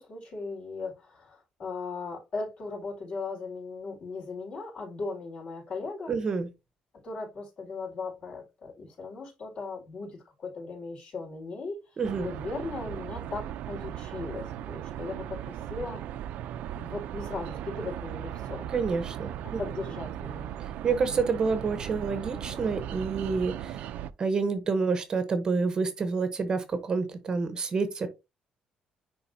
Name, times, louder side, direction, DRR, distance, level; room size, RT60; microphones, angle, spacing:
voice 1, 0.0-6.2 6.9-11.8 12.2-16.0 16.8-18.7 19.4-20.5, left 3 dB, 50° left, 4.3 m, -38 dB
voice 2, 6.1-6.5 12.0-12.3 18.7-19.6 20.6-23.9 24.2-28.1, right 4 dB, 30° right, 0.8 m, -28 dB
sound 1, 12.0-24.1, right 11 dB, 90° right, 0.5 m, -37 dB
10.0 x 3.8 x 2.7 m
cardioid pair, 170°, 2 cm